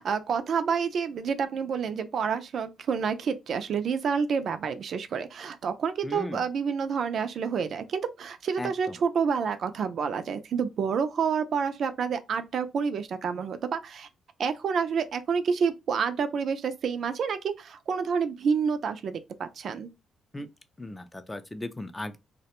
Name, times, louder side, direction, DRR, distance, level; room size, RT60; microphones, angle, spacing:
voice 1, 0.0-14.1 14.4-19.9, right 6 dB, 60° right, 0.3 m, -28 dB
voice 2, 6.0-6.4 8.6-9.0 20.3-20.5 20.8-22.2, left 1 dB, 15° left, 0.4 m, -37 dB
2.3 x 2.1 x 2.8 m
cardioid pair, 90°, 0 cm